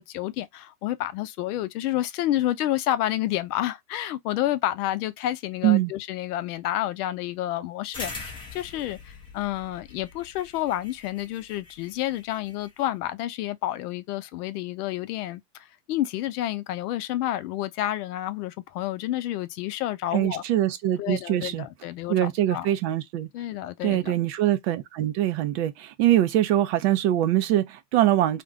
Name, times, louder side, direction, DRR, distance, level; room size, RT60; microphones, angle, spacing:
voice 1, 0.0-20.4 21.0-22.7 23.3-24.1, left 13 dB, 65° left, 0.6 m, -29 dB
sound 1, 7.9-12.8, left 3 dB, 10° left, 0.5 m, -42 dB
voice 2, 20.1-21.6 22.1-23.3 23.8-28.4, right 13 dB, 45° right, 0.4 m, -23 dB
2.5 x 2.2 x 3.5 m
supercardioid pair, 135°, 49 cm